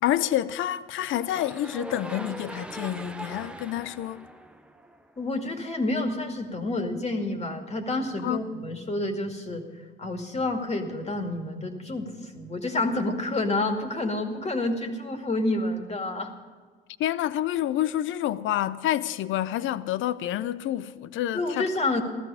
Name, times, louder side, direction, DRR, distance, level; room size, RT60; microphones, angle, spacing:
voice 1, 0.0-4.3 8.2-8.4 17.0-21.7, left 12 dB, 80° left, 0.6 m, -28 dB
sound 1, 1.1-5.3, right 1 dB, 5° right, 0.8 m, -40 dB
voice 2, 5.2-9.6 10.0-16.3 21.3-22.0, left 2 dB, 35° left, 2.3 m, -29 dB
15.5 x 13.5 x 5.6 m
cardioid pair, 90°, 20 cm